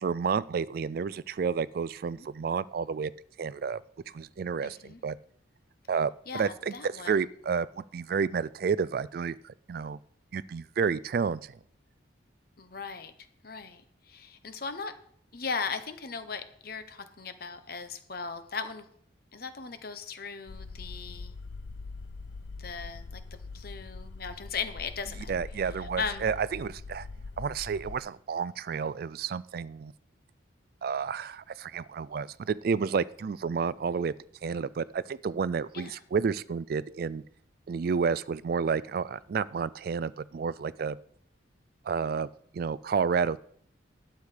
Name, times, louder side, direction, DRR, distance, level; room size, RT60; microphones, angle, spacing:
voice 1, 0.0-3.1 3.4-3.8 4.1-5.2 5.9-10.0 10.3-11.5 25.3-27.1 27.4-29.9 30.8-34.1 34.4-37.2 37.7-41.0 41.9-42.3 42.5-43.4, right 6 dB, 50° right, 19 dB, 0.3 m, -30 dB
voice 2, 4.6-5.0 6.3-7.1 12.6-13.1 13.4-13.8 14.1-14.9 15.3-18.9 19.3-21.3 22.6-25.4 25.8-26.3 35.7-36.0, left 5 dB, 50° left, 10 dB, 1.0 m, -38 dB
sound 1, 20.5-28.0, left 3 dB, 65° left, 0.5 m, -43 dB
11.5 x 8.1 x 5.0 m, 0.64 s
head